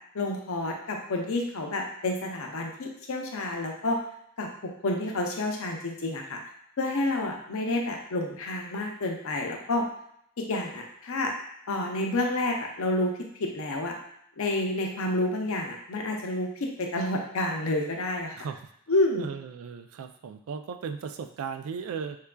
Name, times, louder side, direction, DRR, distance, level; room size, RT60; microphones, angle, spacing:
voice 1, 0.1-4.0 4.4-6.4 6.8-9.8 10.4-11.3 11.7-13.1 13.4-13.9 14.4-18.3 18.9-19.2, left 2 dB, 70° left, 1 dB, 0.6 m, -29 dB
voice 2, 18.4-18.7 19.2-22.2, right 6 dB, 75° right, 7 dB, 0.3 m, -36 dB
4.3 x 2.4 x 2.2 m, 0.71 s
head